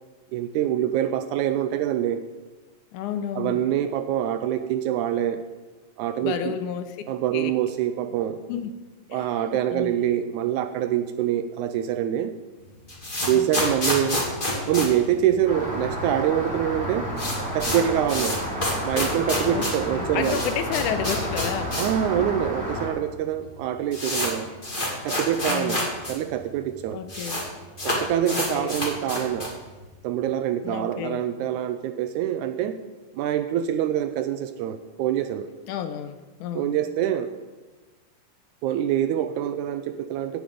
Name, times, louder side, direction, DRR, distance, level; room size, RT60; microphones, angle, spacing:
voice 1, 0.3-2.2 3.4-5.4 6.0-6.6 7.1-8.4 9.1-12.3 13.3-14.2 14.7-17.1 17.5-18.4 18.8-20.4 21.8-24.5 25.1-27.0 27.8-29.5 30.0-32.8 33.1-35.5 36.6-37.3 38.6-40.4, right 10 dB, 80° right, 10 dB, 1.9 m, -25 dB
voice 2, 2.9-3.6 6.2-7.0 7.3-7.5 8.5-8.7 9.1-9.9 13.3-13.8 19.4-21.8 22.2-22.3 25.5-25.9 26.9-27.4 28.3-28.8 30.6-31.2 35.7-36.7, left 9 dB, 80° left, 10 dB, 2.1 m, -31 dB
sound 1, 12.6-15.9 16.1-16.2 16.5-16.6 16.9-22.0 22.3-22.4 23.1-23.2 23.5-26.1 26.4-26.5 26.7-27.4 27.8-29.6, left 1 dB, 15° left, 2.3 m, -28 dB
Rain, 15.5-22.9, equal, 5° right, 3.4 m, -31 dB
15.5 x 9.2 x 5.1 m, 1.2 s
omnidirectional pair, 3.6 m